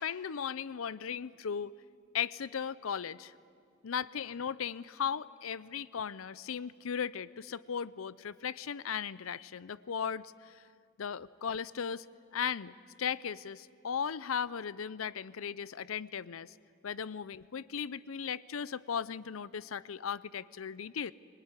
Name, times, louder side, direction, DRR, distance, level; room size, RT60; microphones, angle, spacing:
voice 1, 0.0-1.8 2.1-3.3 3.8-10.6 11.0-12.1 12.3-16.5 16.8-21.1, left 7 dB, 85° left, 18 dB, 0.6 m, -37 dB
23.0 x 21.0 x 9.8 m, 2.3 s
head